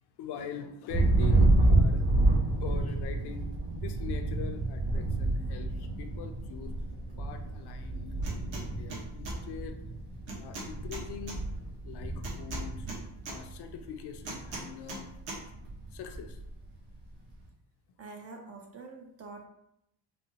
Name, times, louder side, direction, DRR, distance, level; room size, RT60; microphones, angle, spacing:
voice 1, 0.2-2.0 2.6-3.5 3.8-6.7 7.2-9.8 10.4-11.4 11.8-12.9 13.3-15.1 15.9-16.4, left 8 dB, 55° left, 6 dB, 0.5 m, -43 dB
Thunder, 0.9-13.8 14.1-14.7 15.0-16.5, right 2 dB, 50° right, 1.4 m, -29 dB
sound 1, 8.2-8.6 8.9-9.4 10.3-11.4 12.2-13.4 14.2-15.0 15.3-15.4, right 2 dB, 70° right, 1.2 m, -40 dB
voice 2, 18.0-19.5, right 3 dB, 35° right, 3 dB, 0.4 m, -46 dB
4.1 x 2.1 x 2.7 m, 0.78 s
cardioid pair, 110°, 49 cm